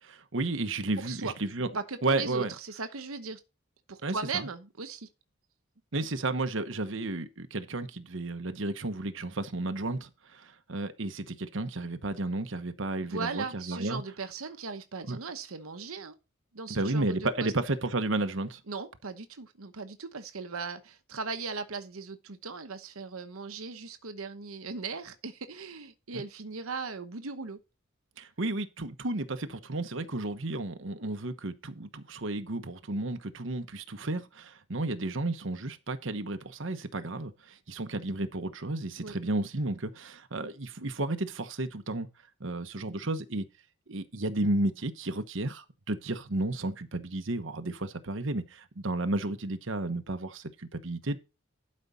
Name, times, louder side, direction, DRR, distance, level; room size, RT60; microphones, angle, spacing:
voice 1, 0.0-1.7 2.0-2.5 4.0-4.4 5.9-14.0 15.1-15.2 16.7-18.6 26.1-26.2 28.2-42.1 42.4-43.5 43.9-51.2, right 2 dB, 60° right, 1.1 m, -32 dB
voice 2, 1.0-1.3 1.7-3.4 3.9-5.1 13.1-16.2 16.5-17.5 18.7-27.6 39.0-39.2, right 4 dB, 80° right, 1.0 m, -38 dB
12.0 x 5.3 x 4.2 m
head